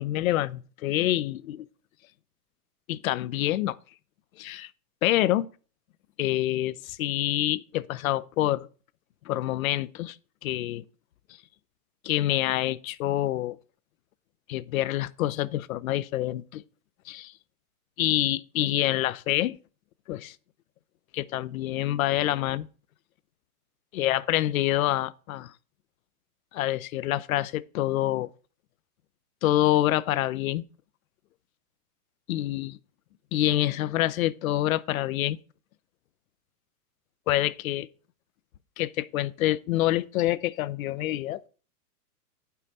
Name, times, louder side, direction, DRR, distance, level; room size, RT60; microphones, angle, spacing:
voice 1, 0.0-1.7 2.9-3.8 4.4-4.7 5.0-5.5 6.2-8.7 9.3-10.2 10.4-10.8 12.0-13.6 14.5-16.6 17.1-17.3 18.0-19.6 20.1-20.4 21.1-22.7 23.9-25.5 26.5-28.3 29.4-30.6 32.3-32.8 33.3-35.4 37.3-37.9 38.8-41.5, left 14 dB, 60° left, 0.6 m, -26 dB
9.3 x 5.6 x 4.2 m
hypercardioid pair, 155°, 47 cm